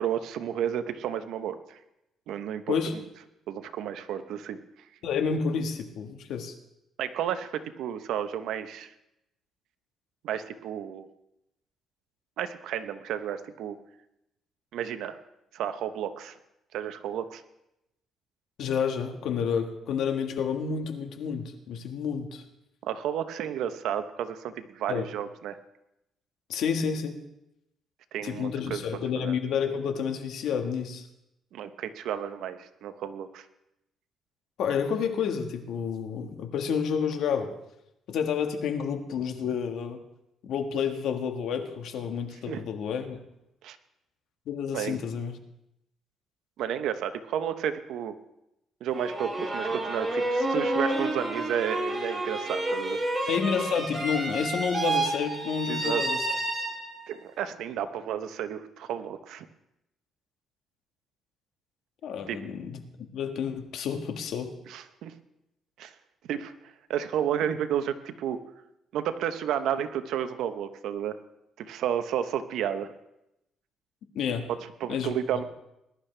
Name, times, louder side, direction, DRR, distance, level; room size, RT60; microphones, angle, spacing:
voice 1, 0.0-1.8 2.3-3.0 3.5-4.6 7.0-8.9 10.2-11.1 12.4-13.8 14.7-15.2 15.5-16.4 16.7-17.4 22.8-25.6 28.1-29.3 31.5-33.4 42.5-42.6 43.6-43.8 44.7-45.0 46.6-48.2 48.8-53.0 55.7-56.0 57.1-59.5 62.3-62.4 64.7-65.1 65.8-65.9 66.3-68.4 68.9-71.2 71.6-72.9 74.5-75.4, right 9 dB, 80° right, 10 dB, 0.9 m, -32 dB
voice 2, 5.0-6.5 18.6-22.4 24.9-25.0 26.5-27.2 28.2-31.0 34.6-37.5 38.1-40.0 40.4-43.2 44.5-45.4 53.3-56.2 62.0-62.8 63.1-64.5 74.1-74.5 74.9-75.1, left 6 dB, 70° left, 5 dB, 1.6 m, -30 dB
sound 1, 48.9-57.1, right 2 dB, 20° right, 2.3 m, -30 dB
20.5 x 11.5 x 3.3 m, 0.86 s
cardioid pair, 125°, 0 cm